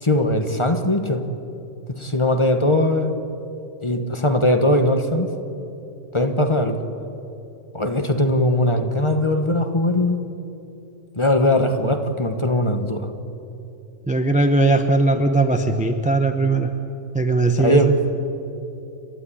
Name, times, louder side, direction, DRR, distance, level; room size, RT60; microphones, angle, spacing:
voice 1, 0.0-1.2 2.0-3.1 3.8-5.3 6.1-6.8 7.7-10.2 11.1-13.1 17.6-17.9, left 1 dB, 25° left, 6 dB, 1.3 m, -20 dB
voice 2, 14.1-16.7 17.1-17.9, right 2 dB, 5° right, 6 dB, 0.8 m, -19 dB
29.5 x 12.5 x 10.0 m, 2.9 s
omnidirectional pair, 1.3 m